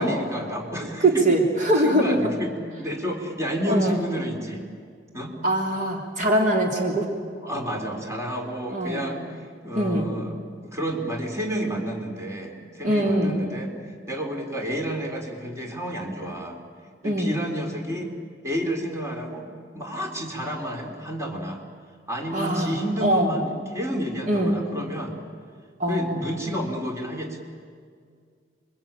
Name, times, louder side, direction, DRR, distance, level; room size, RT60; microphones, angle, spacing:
voice 1, 0.0-1.3 1.8-4.6 5.1-5.4 6.5-6.6 7.4-16.6 17.0-18.1 18.4-21.6 22.1-25.2 25.9-27.4, equal, 15° right, 1 dB, 3.7 m, -30 dB
voice 2, 0.8-2.3 3.7-4.0 5.4-7.1 8.7-9.1 9.7-10.1 12.8-13.4 17.0-17.4 22.3-23.3 24.3-24.6 25.8-26.2, right 1 dB, 45° right, 0 dB, 3.2 m, -22 dB
28.5 x 23.5 x 8.9 m, 2.1 s
head